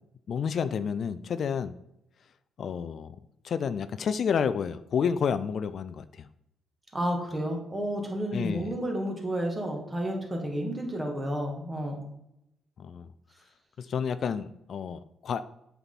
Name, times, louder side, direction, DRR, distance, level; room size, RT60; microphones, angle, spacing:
voice 1, 0.3-1.7 2.6-3.2 3.4-6.3 8.3-8.7 12.8-13.1 13.8-15.4, left 7 dB, 55° left, 13 dB, 0.4 m, -30 dB
voice 2, 6.9-12.0, equal, 20° right, 1 dB, 2.1 m, -31 dB
7.9 x 5.9 x 4.1 m, 0.82 s
cardioid pair, 90°, 0 cm